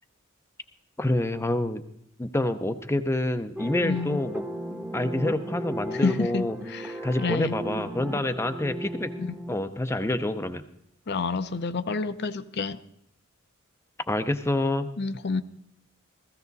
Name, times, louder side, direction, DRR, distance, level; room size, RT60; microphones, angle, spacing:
voice 1, 1.0-1.8 2.2-4.4 4.9-6.6 7.0-9.1 9.5-10.6 14.1-14.9, left 1 dB, 10° left, 0.6 m, -27 dB
sound 1, 3.5-9.5, right 1 dB, 10° right, 1.1 m, -36 dB
voice 2, 3.8-4.2 6.0-7.6 9.2-9.3 11.1-12.8 15.0-15.4, left 4 dB, 50° left, 0.7 m, -29 dB
15.5 x 15.5 x 4.1 m
head